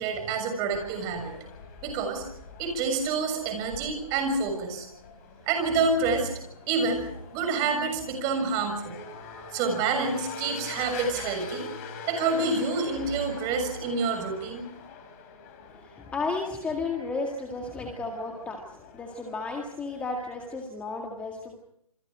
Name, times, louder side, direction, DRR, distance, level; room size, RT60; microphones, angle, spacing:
voice 1, 0.0-1.3 1.8-2.2 2.6-4.9 5.5-6.3 6.7-9.0 9.5-11.6 12.1-14.6, right 4 dB, 20° right, 6 dB, 6.8 m, -28 dB
sound 1, 0.7-20.6, left 4 dB, 30° left, 4.3 m, -44 dB
voice 2, 15.7-21.6, left 3 dB, 5° left, 2 dB, 2.0 m, -33 dB
28.5 x 26.0 x 5.1 m, 0.73 s
hypercardioid pair, 155°, 18 cm